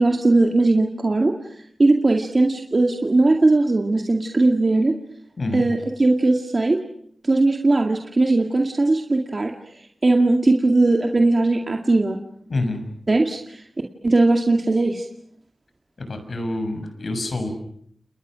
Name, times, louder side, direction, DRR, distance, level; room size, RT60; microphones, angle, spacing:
voice 1, 0.0-1.3 1.8-4.9 5.5-6.8 7.2-9.5 10.0-12.2 13.1-13.6 14.0-15.0, right 2 dB, 40° right, 2 dB, 2.2 m, -19 dB
voice 2, 16.1-17.5, left 2 dB, 60° left, 7 dB, 6.9 m, -26 dB
30.0 x 29.0 x 6.4 m, 0.67 s
wide cardioid pair, 95°, 0 cm